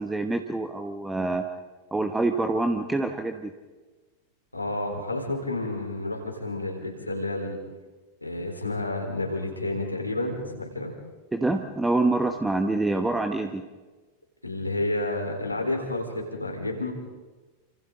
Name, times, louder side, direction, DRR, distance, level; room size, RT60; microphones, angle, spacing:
voice 1, 0.0-1.4 1.9-3.5 11.3-13.6, right 2 dB, 10° right, 6 dB, 1.2 m, -26 dB
voice 2, 4.5-7.6 8.2-10.9 14.4-16.9, left 2 dB, 85° left, 1 dB, 4.2 m, -30 dB
29.0 x 26.5 x 3.9 m, 1.3 s
figure-of-eight pair, 90°, 0 cm